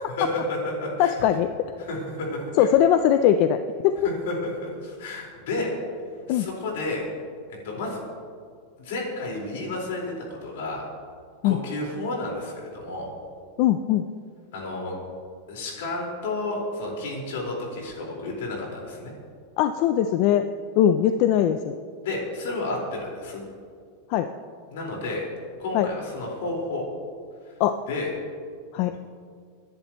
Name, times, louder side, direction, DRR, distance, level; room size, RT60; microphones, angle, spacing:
voice 1, 0.2-1.1 1.8-2.7 4.0-5.7 6.3-7.0 7.6-8.0 8.8-10.9 11.4-13.1 14.5-15.0 15.5-19.1 22.0-23.4 24.7-25.2 25.6-26.8 27.9-28.1, left 2 dB, 75° left, -2 dB, 4.6 m, -31 dB
voice 2, 1.0-1.5 2.6-3.6 3.8-3.9 6.3-6.5 11.4-11.6 13.6-14.1 19.6-20.5 20.8-21.8 24.1-24.3 25.7-25.9 27.6-27.8 28.7-28.9, left 10 dB, 45° left, 9 dB, 0.4 m, -20 dB
26.5 x 10.5 x 3.1 m, 2.1 s
supercardioid pair, 165°, 0 cm